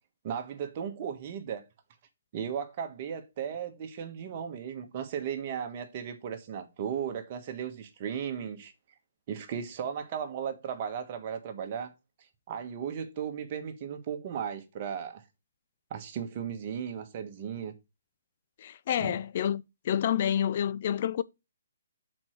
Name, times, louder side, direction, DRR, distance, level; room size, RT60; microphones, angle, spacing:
voice 1, 0.2-1.6 2.3-8.7 9.3-11.9 12.5-15.2 15.9-17.7 19.0-19.2, right 8 dB, 40° right, 1.4 m, -36 dB
voice 2, 18.6-21.2, left 9 dB, 45° left, 0.4 m, -29 dB
6.0 x 4.5 x 6.3 m
figure-of-eight pair, 135°, 0 cm